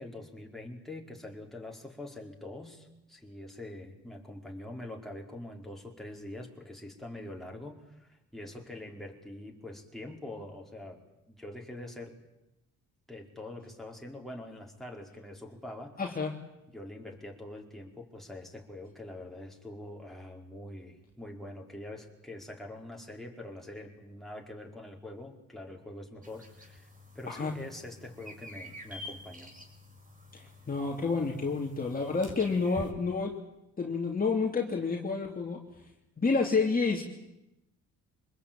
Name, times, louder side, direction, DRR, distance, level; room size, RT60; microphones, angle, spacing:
voice 1, 0.0-12.2 13.1-16.0 16.7-26.9 27.1-29.5, left 1 dB, ahead, 0 dB, 4.7 m, -44 dB
voice 2, 16.0-16.3 27.3-27.5 30.3-33.3 33.8-35.6 36.2-37.0, left 4 dB, 30° left, 1 dB, 3.0 m, -29 dB
sound 1, 26.2-32.9, left 1 dB, 25° right, 5.6 m, -48 dB
25.5 x 20.5 x 9.0 m, 0.90 s
cardioid pair, 90°, 30 cm